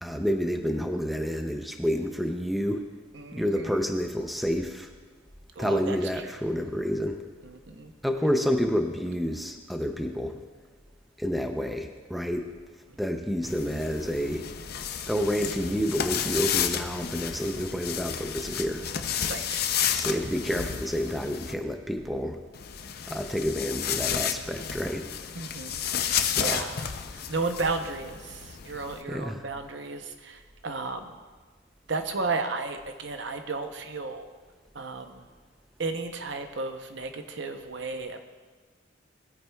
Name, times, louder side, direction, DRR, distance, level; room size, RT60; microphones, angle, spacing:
voice 1, 0.0-2.8 3.3-4.9 5.6-7.2 8.0-10.4 11.2-12.5 13.0-14.4 15.1-18.8 19.9-22.4 23.1-25.2 26.2-26.6 29.1-29.4, equal, ahead, 4 dB, 0.5 m, -29 dB
voice 2, 3.1-3.9 5.6-7.0 7.4-7.9 12.9-13.0 19.3-19.7 25.3-25.8 26.1-26.9 27.3-31.2 31.9-34.3 34.7-35.3 35.8-38.2, right 3 dB, 60° right, 6 dB, 0.8 m, -34 dB
sound 1, 13.4-21.5 22.5-29.0, left 8 dB, 50° left, 0.5 m, -32 dB
18.5 x 8.8 x 2.3 m, 1.5 s
head